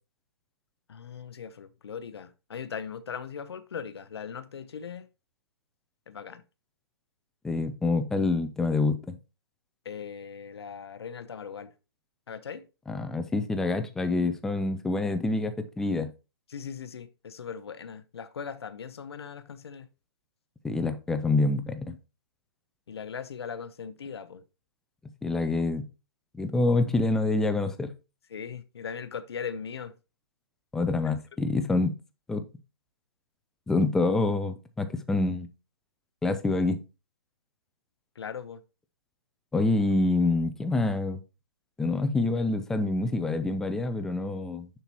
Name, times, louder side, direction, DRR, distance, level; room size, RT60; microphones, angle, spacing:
voice 1, 0.9-5.1 6.1-6.4 9.8-11.7 12.3-12.7 16.5-19.9 22.9-24.4 28.3-29.9 31.0-31.1 38.2-38.6, left 7 dB, 85° left, 0.7 m, -39 dB
voice 2, 7.4-9.2 12.9-16.1 20.6-22.0 25.2-25.8 26.3-27.9 30.7-31.9 32.3-32.4 33.7-35.5 36.2-36.8 39.5-41.2 41.8-44.7, left 3 dB, 5° left, 0.4 m, -26 dB
6.9 x 5.9 x 2.9 m
hypercardioid pair, 155°, 13 cm